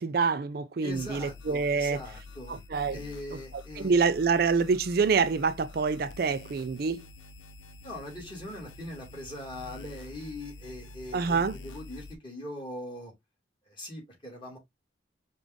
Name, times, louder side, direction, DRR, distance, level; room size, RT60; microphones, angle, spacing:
voice 1, 0.0-2.0 2.5-3.0 3.8-7.0 11.1-11.5, right 5 dB, 50° right, 0.4 m, -26 dB
voice 2, 0.8-2.6 2.9-4.0 7.8-13.1 13.7-14.6, left 1 dB, 25° left, 2.2 m, -41 dB
sound 1, 0.9-12.1, left 3 dB, 85° left, 0.7 m, -47 dB
5.1 x 2.4 x 3.4 m
head